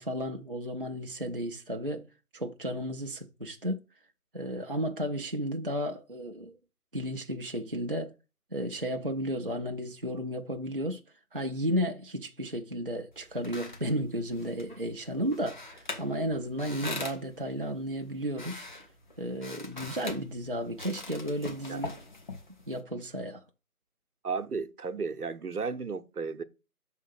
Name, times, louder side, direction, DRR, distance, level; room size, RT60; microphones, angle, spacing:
voice 1, 0.0-2.1 2.3-3.8 4.3-6.5 6.9-8.1 8.5-11.0 11.3-18.7 19.2-21.9 22.7-23.4, equal, 40° right, 0.4 m, -33 dB
sound 1, 13.1-22.8, left 2 dB, 30° left, 0.9 m, -43 dB
voice 2, 24.2-26.4, right 5 dB, 75° right, 0.8 m, -34 dB
5.7 x 3.7 x 6.0 m
figure-of-eight pair, 150°, 45 cm